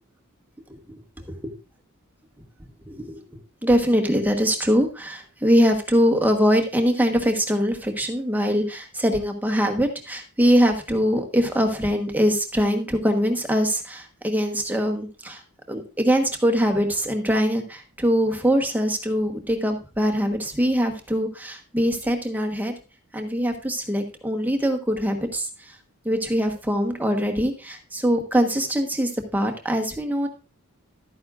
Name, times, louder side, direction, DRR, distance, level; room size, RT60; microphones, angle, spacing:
voice 1, 2.9-3.2 3.6-15.4 15.7-22.7 23.1-25.5 26.0-30.3, equal, 10° right, 4 dB, 1.2 m, -22 dB
12.0 x 9.6 x 2.5 m, 0.32 s
head